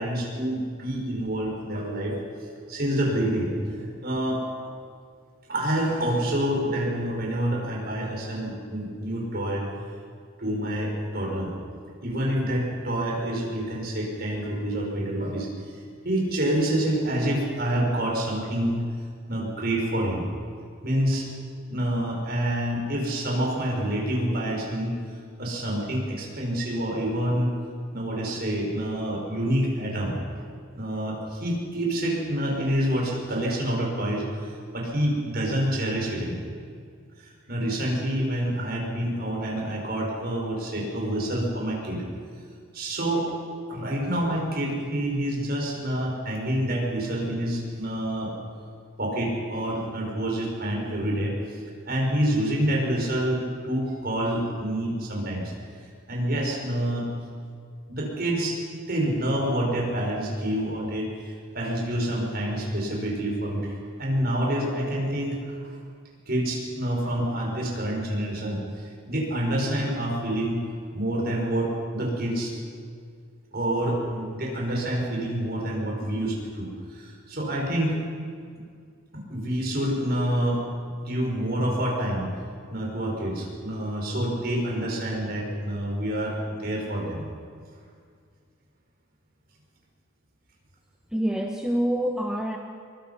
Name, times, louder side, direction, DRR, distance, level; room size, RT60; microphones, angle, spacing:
voice 1, 0.0-2.1 2.7-4.4 5.5-9.7 10.4-11.5 12.0-15.8 16.0-18.8 19.3-20.3 20.8-21.3 21.7-25.0 25.4-27.5 27.9-30.2 30.7-36.4 37.2-42.0 42.7-43.3 43.7-48.3 49.0-51.6 51.9-55.5 56.1-57.1 57.9-58.6 58.9-65.8 66.3-70.6 70.9-72.5 73.5-78.0 79.1-80.6 81.1-82.3 82.7-87.3, right 1 dB, 45° right, -1 dB, 5.5 m, -27 dB
voice 2, 91.1-92.6, equal, 5° right, 0 dB, 1.0 m, -26 dB
23.0 x 22.5 x 5.7 m, 2.2 s
head